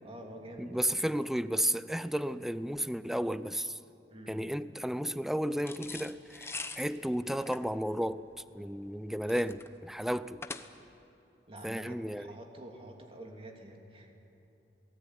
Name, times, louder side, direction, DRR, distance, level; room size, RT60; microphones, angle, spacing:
voice 1, 0.0-0.8 4.1-4.5 11.5-14.1, right 1 dB, 30° right, 3.2 m, -47 dB
voice 2, 0.6-3.8 4.3-8.2 8.5-10.4 11.6-12.3, equal, ahead, 0.5 m, -33 dB
sound 1, 5.6-11.0, left 3 dB, 15° left, 1.0 m, -44 dB
27.5 x 19.0 x 10.0 m
head